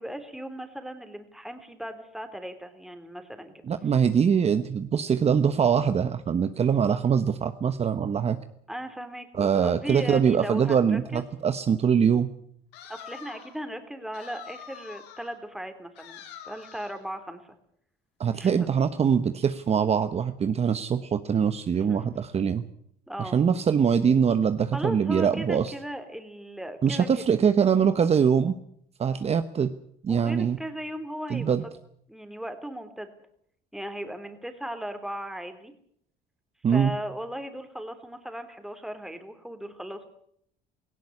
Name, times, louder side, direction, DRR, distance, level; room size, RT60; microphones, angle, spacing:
voice 1, 0.0-3.5 8.7-11.2 12.9-17.4 18.4-18.5 21.9-22.0 23.1-23.4 24.7-27.1 30.1-31.6 32.1-33.1 33.7-35.7 36.7-40.0, right 1 dB, ahead, 8 dB, 3.4 m, -37 dB
voice 2, 3.7-8.4 9.3-12.3 18.2-22.6 23.2-25.7 26.8-28.6 29.0-29.7 30.0-30.6 31.3-31.6 36.6-36.9, right 7 dB, 40° right, 10 dB, 1.1 m, -23 dB
sound 1, 12.7-13.6 14.1-15.4 16.0-17.0, left 8 dB, 90° left, 4.2 m, -45 dB
18.0 x 16.5 x 9.8 m, 0.68 s
cardioid pair, 110°, 17 cm